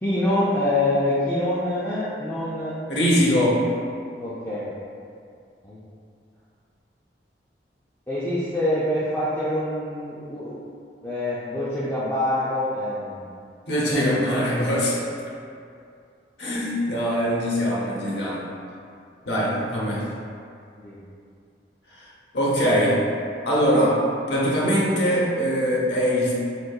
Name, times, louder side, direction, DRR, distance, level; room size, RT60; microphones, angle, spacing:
voice 1, 0.0-2.7 4.2-4.7 5.6-5.8 8.1-10.6 11.0-13.2 13.9-14.0 20.8-21.0, left 1 dB, 15° left, -11 dB, 0.4 m, -25 dB
voice 2, 2.9-3.6 13.7-15.0 16.4-18.4 19.3-20.1 22.0-22.1 22.3-23.0 23.4-24.0 24.3-26.3, equal, 80° left, -5 dB, 0.7 m, -22 dB
3.8 x 2.6 x 2.3 m, 2.4 s
head